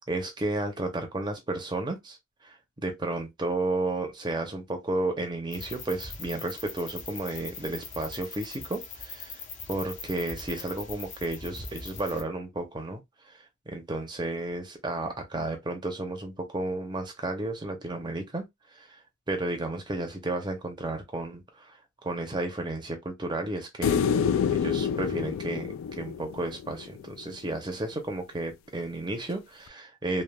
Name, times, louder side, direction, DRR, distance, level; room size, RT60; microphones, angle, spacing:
voice 1, 0.1-2.2 2.4-2.5 2.8-9.4 9.7-13.0 13.7-18.4 18.7-19.0 19.3-21.8 22.0-24.0 24.5-30.2, right 2 dB, 20° right, 0.6 m, -32 dB
sound 1, 5.5-12.2, left 4 dB, 40° left, 0.6 m, -41 dB
sound 2, 23.8-27.1 29.7-29.8, left 7 dB, 90° left, 0.3 m, -27 dB
3.2 x 2.2 x 2.2 m
head